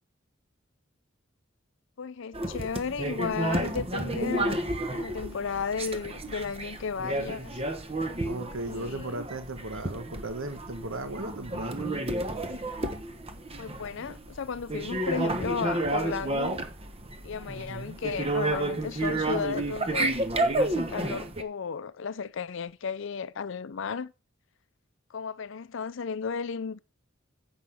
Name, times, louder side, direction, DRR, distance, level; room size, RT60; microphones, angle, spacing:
voice 1, 2.0-4.7 4.9-7.6 8.6-9.2 13.6-16.6 17.2-20.2 20.6-24.1 25.1-26.8, left 5 dB, 65° left, 0.5 m, -34 dB
sound 1, 2.3-21.4, right 2 dB, 30° right, 1.2 m, -31 dB
voice 2, 8.2-12.0 17.5-18.0, right 2 dB, 80° right, 1.4 m, -37 dB
10.0 x 8.0 x 3.6 m
head